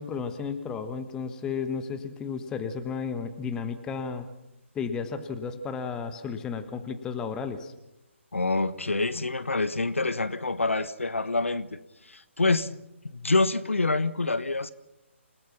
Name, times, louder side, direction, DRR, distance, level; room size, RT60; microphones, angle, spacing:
voice 1, 0.0-4.3 4.7-7.7, left 5 dB, 10° left, 9 dB, 1.3 m, -33 dB
voice 2, 8.3-11.8 12.0-12.8 13.1-14.7, left 3 dB, 70° left, 15 dB, 1.2 m, -26 dB
28.0 x 18.5 x 5.9 m, 0.91 s
figure-of-eight pair, 145°, 7 cm